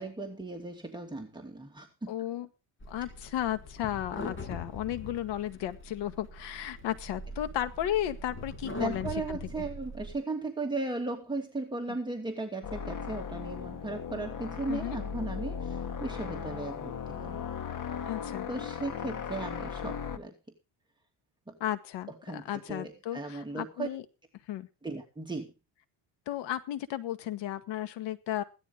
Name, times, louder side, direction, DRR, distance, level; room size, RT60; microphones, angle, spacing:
voice 1, 0.0-2.1 8.8-17.5 18.5-20.3 21.5-21.6 22.2-23.9 24.8-25.5, right 2 dB, 10° right, 1 dB, 2.6 m, -36 dB
voice 2, 2.1-2.5 2.9-9.6 14.7-15.0 18.1-18.5 21.6-24.0 24.5-24.7 26.3-28.4, left 12 dB, 85° left, 11 dB, 1.9 m, -34 dB
sound 1, 2.8-10.1, left 2 dB, 30° left, 5.8 m, -42 dB
sound 2, 12.6-20.2, left 7 dB, 50° left, 2.0 m, -37 dB
16.5 x 12.5 x 3.6 m, 0.30 s
cardioid pair, 115°, 41 cm